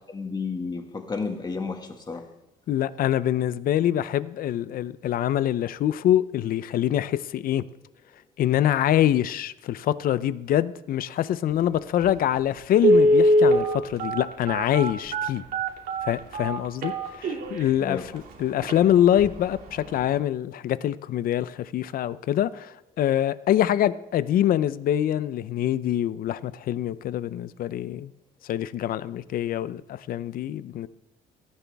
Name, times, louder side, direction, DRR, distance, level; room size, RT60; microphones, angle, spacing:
voice 1, 0.1-2.2 17.8-18.0, left 4 dB, 25° left, 4 dB, 2.0 m, -32 dB
voice 2, 2.7-7.6 8.4-15.4 16.0-28.1 28.4-30.9, left 11 dB, 60° left, 16 dB, 0.6 m, -25 dB
Telephone, 12.0-12.1 12.8-17.6 18.2-18.3 18.6-18.8 19.2-19.5 19.8-19.9, right 1 dB, 60° right, 2.6 m, -21 dB
17.0 x 14.0 x 3.5 m, 0.92 s
cardioid pair, 110°, 17 cm